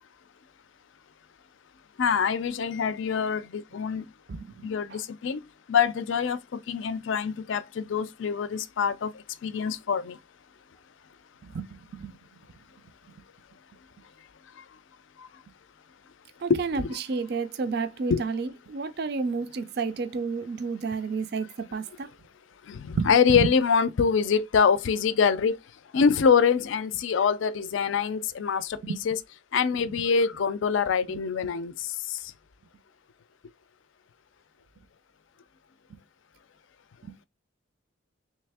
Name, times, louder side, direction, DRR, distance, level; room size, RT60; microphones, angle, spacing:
voice 1, 2.0-4.0 4.6-5.4 5.7-9.1 9.4-10.2 16.5-17.0 18.1-18.2 22.7-25.6 25.9-29.2 29.5-31.7 32.1-32.2, left 6 dB, 70° left, 0.4 m, -25 dB
voice 2, 4.3-5.0 11.4-12.1 16.4-22.1 23.0-23.5 28.8-29.0 35.9-36.0 37.0-37.1, right 4 dB, 50° right, 0.4 m, -31 dB
3.3 x 3.1 x 3.4 m
head